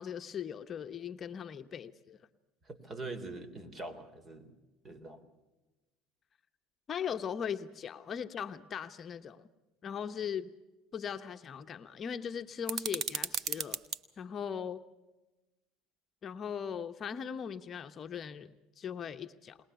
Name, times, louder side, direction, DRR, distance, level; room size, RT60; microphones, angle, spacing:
voice 1, 0.0-2.2 6.9-9.5 9.8-10.5 10.9-13.8 14.2-14.8 16.2-19.6, left 7 dB, 40° left, 0.9 m, -39 dB
voice 2, 2.6-4.5 4.8-5.2, right 2 dB, 30° right, 3.4 m, -43 dB
sound 1, 12.7-14.0, right 8 dB, 50° right, 1.1 m, -35 dB
21.5 x 20.0 x 6.9 m
hypercardioid pair, 80°, 0 cm